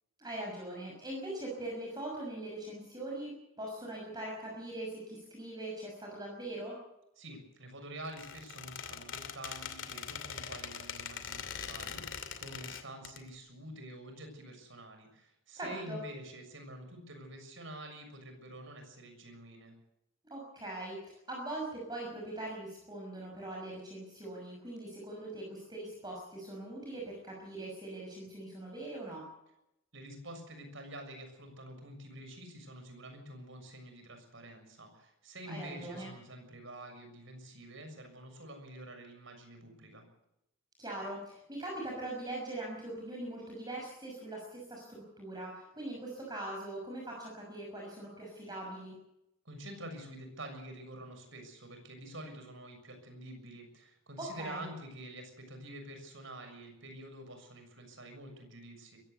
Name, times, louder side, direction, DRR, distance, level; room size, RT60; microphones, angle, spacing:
voice 1, 0.2-6.8 15.6-16.0 20.3-29.3 35.5-36.1 40.8-48.9 54.2-54.7, right 1 dB, 20° right, -2 dB, 6.0 m, -41 dB
voice 2, 7.2-19.7 29.9-40.0 49.4-59.0, right 1 dB, 65° right, 6 dB, 6.8 m, -47 dB
Squeak, 8.0-13.2, left 7 dB, 60° left, 2.6 m, -42 dB
22.0 x 16.5 x 8.2 m, 0.85 s
head